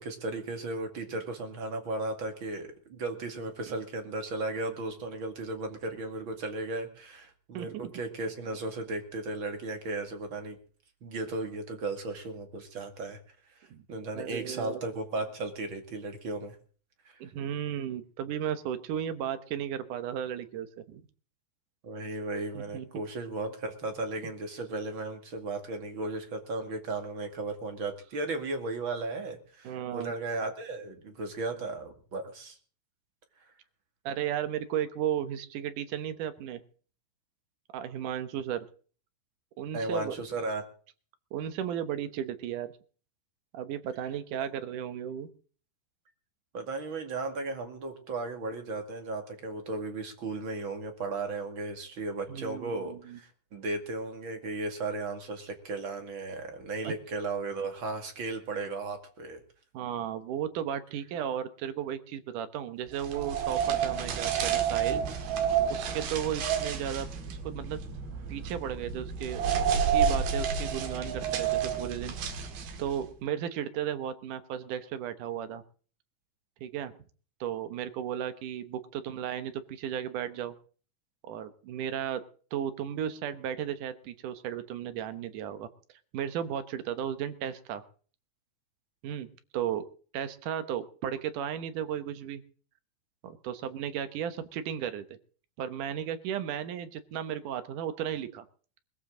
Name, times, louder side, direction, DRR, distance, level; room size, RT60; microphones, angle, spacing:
voice 1, 0.0-10.6 11.0-13.2 13.9-16.6 21.8-32.6 39.7-40.6 46.5-59.4, right 2 dB, 40° right, 6 dB, 2.5 m, -35 dB
voice 2, 7.5-7.9 13.7-13.8 14.1-14.8 17.2-21.0 22.5-22.9 29.6-30.1 34.0-36.6 37.7-38.7 39.6-40.2 41.3-42.7 43.5-45.3 52.3-53.2 56.8-56.9 59.7-65.0 65.7-67.8 68.3-69.4 69.7-72.5 72.8-75.6 76.6-76.9 77.4-80.5 81.2-82.2 82.5-85.7 86.1-87.8 89.0-89.9 90.1-92.4 93.2-95.1 95.6-98.5, right 9 dB, 70° right, 11 dB, 2.4 m, -35 dB
sound 1, 63.0-73.0, right 7 dB, 85° right, 3.9 m, -30 dB
20.5 x 15.0 x 3.8 m, 0.42 s
omnidirectional pair, 4.2 m